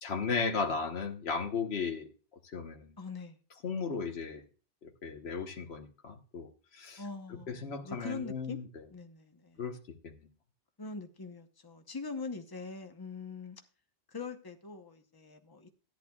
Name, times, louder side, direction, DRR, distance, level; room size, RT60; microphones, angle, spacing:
voice 1, 0.0-2.1 2.4-2.9 3.6-4.4 4.8-7.0 7.3-8.7 9.6-9.8 10.0-10.1, left 5 dB, 75° left, 5 dB, 1.3 m, -35 dB
voice 2, 3.0-3.4 7.0-8.6 8.9-9.6 10.8-13.6 14.1-15.7, left 4 dB, 25° left, 6 dB, 0.9 m, -43 dB
14.0 x 10.0 x 2.3 m, 0.36 s
omnidirectional pair, 1.1 m